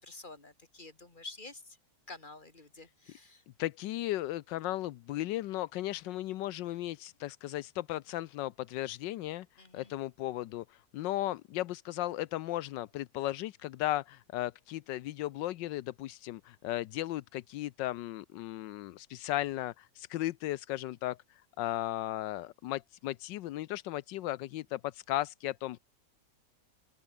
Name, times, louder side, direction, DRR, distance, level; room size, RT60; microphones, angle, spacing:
voice 1, 0.0-1.6 2.1-3.4 9.6-9.9, left 3 dB, 25° left, 3.2 m, -49 dB
voice 2, 3.6-9.5 9.7-21.2 21.6-25.8, left 15 dB, 85° left, 1.3 m, -36 dB
open air
omnidirectional pair, 1.9 m